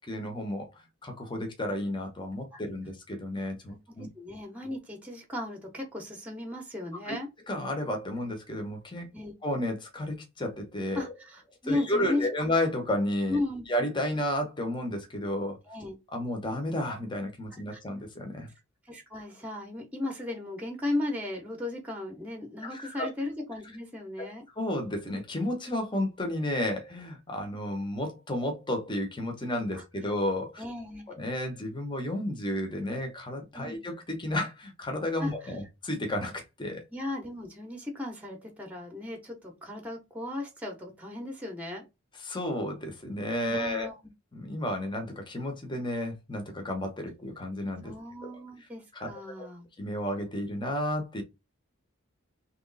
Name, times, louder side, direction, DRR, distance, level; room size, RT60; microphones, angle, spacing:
voice 1, 0.1-0.7 1.0-4.1 7.1-7.2 7.5-9.1 9.4-11.1 11.7-13.4 13.7-15.6 16.1-18.5 22.6-23.1 24.2-24.3 24.6-30.6 31.1-36.8 42.2-43.9 44.3-47.9 48.9-49.1 49.8-51.2, left 1 dB, 25° left, 1.0 m, -32 dB
voice 2, 4.1-7.3 9.1-9.3 10.9-12.3 13.3-13.6 15.7-16.0 17.7-17.8 18.9-24.4 29.7-29.8 30.6-31.2 33.5-33.8 35.2-35.5 36.9-41.8 43.5-43.9 47.8-49.7, left 2 dB, 5° right, 0.9 m, -36 dB
3.1 x 3.1 x 3.9 m
head